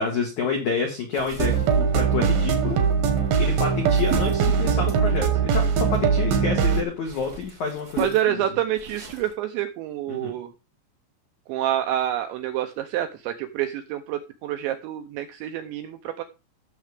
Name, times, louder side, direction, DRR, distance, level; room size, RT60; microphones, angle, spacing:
voice 1, 0.0-2.8 3.4-8.4 10.1-10.3, left 5 dB, 75° left, 2 dB, 1.7 m, -28 dB
sound 1, 1.1-6.3 6.8-9.3, right 4 dB, 50° right, 1.1 m, -38 dB
sound 2, 1.4-6.8, right 6 dB, 70° right, 2.2 m, -21 dB
voice 2, 8.0-10.5 11.5-16.2, right 11 dB, 85° right, 7 dB, 2.6 m, -27 dB
15.0 x 6.6 x 3.5 m, 0.29 s
omnidirectional pair, 5.9 m